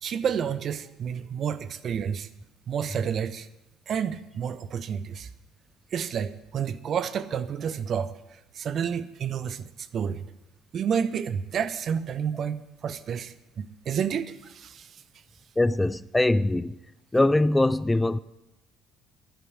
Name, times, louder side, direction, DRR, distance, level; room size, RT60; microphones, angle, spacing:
voice 1, 0.0-2.3 2.7-3.5 3.9-5.3 5.9-8.1 8.5-10.2 10.7-14.9, right 7 dB, 50° right, 0.9 m, -30 dB
voice 2, 15.6-16.8 17.1-18.2, left 2 dB, 15° left, 0.5 m, -22 dB
11.0 x 8.0 x 9.9 m
hypercardioid pair, 60°, 0 cm